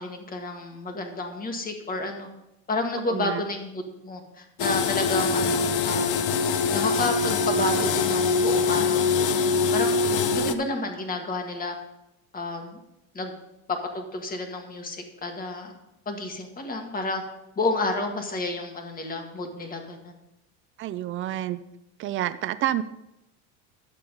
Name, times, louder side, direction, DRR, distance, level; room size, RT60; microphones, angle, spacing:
voice 1, 0.0-2.3 2.7-6.3 6.7-9.9 10.3-11.8 12.3-12.8 13.1-13.3 13.9-15.7 16.1-17.2 17.6-20.1, left 2 dB, 20° left, 4 dB, 1.7 m, -30 dB
voice 2, 3.1-3.4 20.8-21.6 22.0-22.8, right 13 dB, 30° right, 14 dB, 0.5 m, -28 dB
sound 1, 4.6-10.5, left 4 dB, 45° left, 0.8 m, -23 dB
11.5 x 6.7 x 5.4 m, 0.89 s
supercardioid pair, 135°, 42 cm